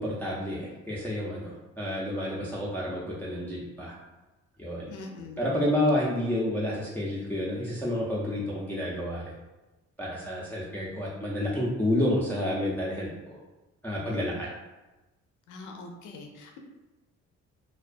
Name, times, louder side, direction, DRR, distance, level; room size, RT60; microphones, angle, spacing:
voice 1, 0.0-3.9 4.6-4.9 5.4-9.3 10.0-13.4 13.8-14.5, left 1 dB, 5° left, -7 dB, 0.4 m, -30 dB
voice 2, 4.9-5.5 14.1-14.2 15.5-16.6, left 3 dB, 85° left, 3 dB, 0.5 m, -43 dB
2.3 x 2.2 x 2.4 m, 1.1 s
cardioid pair, 90°, 30 cm